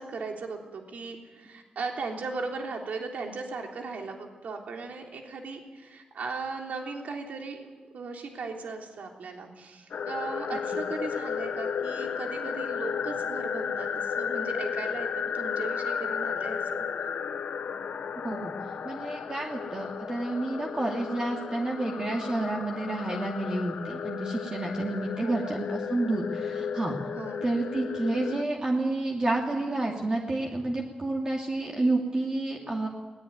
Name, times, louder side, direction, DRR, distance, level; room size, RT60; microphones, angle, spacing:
voice 1, 0.0-16.8 25.2-25.6 27.2-27.4, right 4 dB, 80° right, 2 dB, 3.4 m, -37 dB
sound 1, 9.9-28.4, left 7 dB, 70° left, 0.7 m, -34 dB
voice 2, 18.2-18.5 18.8-27.0 27.4-32.9, right 2 dB, 30° right, -1 dB, 2.6 m, -29 dB
21.5 x 19.0 x 9.6 m, 1.4 s
wide cardioid pair, 130°, 3 cm